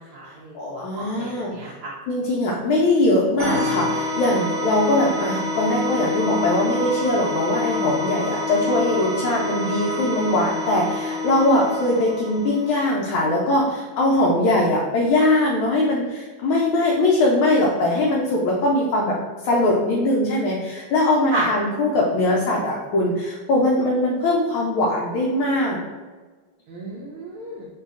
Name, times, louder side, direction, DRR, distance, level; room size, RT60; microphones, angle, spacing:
voice 1, 0.0-1.9 21.3-21.5 26.7-27.7, right 2 dB, 75° right, -6 dB, 1.3 m, -32 dB
voice 2, 0.5-1.7 2.1-19.2 19.4-25.8, left 1 dB, 75° left, -3 dB, 1.3 m, -21 dB
sound 1, 3.4-12.8, left 2 dB, 55° right, 0.9 m, -27 dB
3.8 x 2.7 x 2.4 m, 1.4 s
omnidirectional pair, 2.4 m